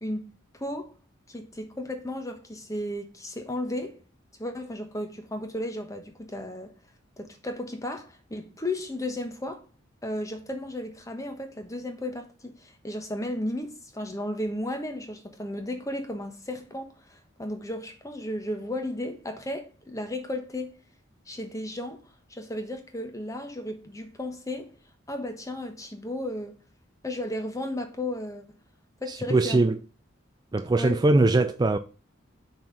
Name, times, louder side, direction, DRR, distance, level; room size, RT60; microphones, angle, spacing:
voice 1, 0.5-0.9 1.3-4.0 4.4-6.7 7.2-9.6 10.0-20.7 21.3-22.0 22.3-24.7 25.1-26.6 27.0-28.4 29.0-29.6 30.7-31.0, left 1 dB, 15° left, 1.1 m, -34 dB
voice 2, 29.1-29.8 30.5-31.8, right 2 dB, 20° right, 0.4 m, -21 dB
5.9 x 4.4 x 6.2 m
head